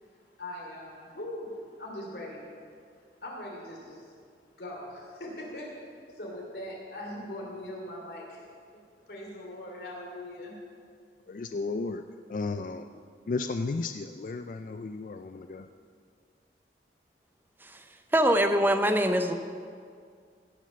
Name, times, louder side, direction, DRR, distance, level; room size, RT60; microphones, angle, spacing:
voice 1, 0.0-2.4 3.2-4.2 4.6-8.5 9.1-10.5, left 1 dB, 65° left, -2 dB, 2.9 m, -41 dB
voice 2, 11.3-12.9 13.3-15.7, left 3 dB, 45° left, 9 dB, 0.3 m, -34 dB
voice 3, 18.1-19.3, equal, 10° right, 7 dB, 0.6 m, -23 dB
16.5 x 6.3 x 6.8 m, 2.2 s
head